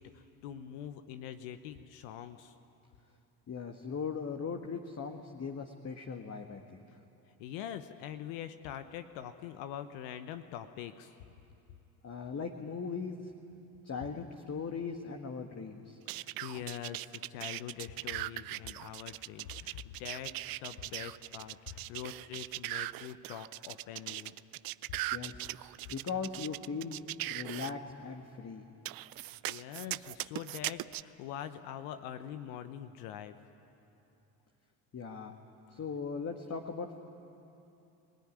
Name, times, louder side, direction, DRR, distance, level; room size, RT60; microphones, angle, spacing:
voice 1, 0.0-2.5 7.4-11.1 16.1-24.3 29.2-33.4, left 10 dB, 70° left, 9 dB, 1.1 m, -44 dB
voice 2, 3.5-6.6 12.0-13.2 13.9-16.0 25.1-25.5 25.9-27.0 27.3-28.6 34.9-35.3 35.7-37.0, left 5 dB, 35° left, 4 dB, 1.7 m, -39 dB
sound 1, 16.1-27.7 28.8-31.0, right 18 dB, 50° right, 0.6 m, -39 dB
25.5 x 17.5 x 9.8 m, 2.9 s
hypercardioid pair, 60°, 44 cm